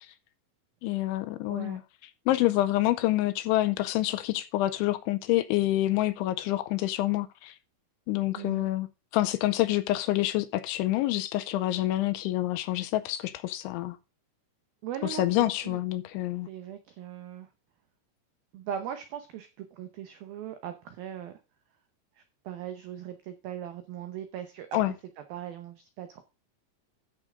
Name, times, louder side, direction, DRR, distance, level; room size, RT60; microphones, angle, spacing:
voice 1, 0.8-1.8 2.3-7.6 8.1-8.9 9.1-14.0 15.0-16.5 24.7-24.9, left 16 dB, 80° left, 2.9 m, -27 dB
voice 2, 1.5-1.8 8.4-8.7 14.8-15.8 16.5-17.5 18.5-21.4 22.2-24.8 25.3-26.2, right 10 dB, 90° right, 2.1 m, -39 dB
13.5 x 6.6 x 3.7 m
omnidirectional pair, 5.6 m